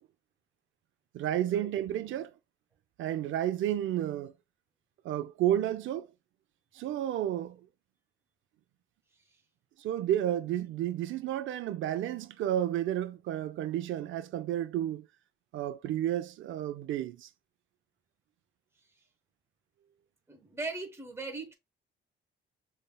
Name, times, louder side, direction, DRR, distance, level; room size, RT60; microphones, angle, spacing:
voice 1, 1.1-2.3 3.0-4.3 5.0-6.1 6.7-7.6 9.8-15.1 15.5-17.3, right 11 dB, 80° right, 0.5 m, -31 dB
voice 2, 20.3-21.6, right 3 dB, 15° right, 0.9 m, -39 dB
5.4 x 3.3 x 2.2 m
cardioid pair, 175°, 20 cm